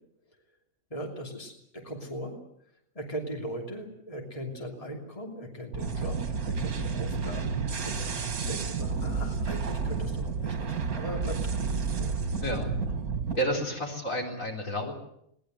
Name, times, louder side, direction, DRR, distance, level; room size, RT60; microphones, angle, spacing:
voice 1, 0.9-2.3 2.9-11.6 12.0-12.2 13.5-13.6, equal, 25° left, 1 dB, 3.0 m, -39 dB
sound 1, 5.7-13.4, right 5 dB, 80° right, 2.0 m, -31 dB
voice 2, 13.4-14.9, equal, 65° left, 1 dB, 4.6 m, -30 dB
21.5 x 19.0 x 7.9 m, 0.75 s
omnidirectional pair, 1.5 m